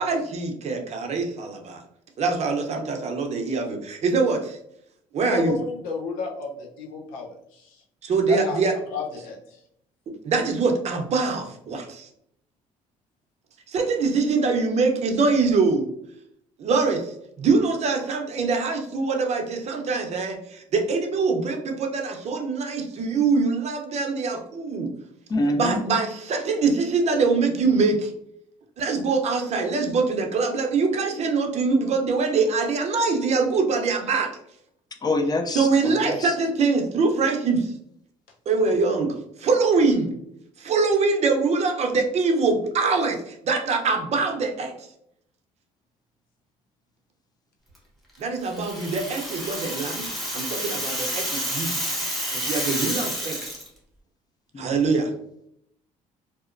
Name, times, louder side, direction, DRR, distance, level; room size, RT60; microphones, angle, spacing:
voice 1, 0.0-1.8 2.2-4.6 5.1-5.6 8.0-8.7 10.2-12.1 13.7-15.9 16.6-24.9 25.5-28.1 28.8-34.3 35.5-37.7 38.5-40.1 40.6-44.7 48.2-50.1 50.3-51.7 52.3-53.5 54.6-55.1, right 4 dB, 50° right, 3 dB, 0.6 m, -23 dB
voice 2, 5.3-7.7 8.2-8.6 8.9-9.4, left 4 dB, 85° left, 0 dB, 0.7 m, -32 dB
voice 3, 25.3-25.8 35.0-36.3 54.5-54.7, left 2 dB, 25° left, 5 dB, 0.5 m, -26 dB
Rattle (instrument), 48.4-53.7, equal, ahead, 1.0 m, -29 dB
2.8 x 2.0 x 2.5 m, 0.73 s
supercardioid pair, 85°, 14 cm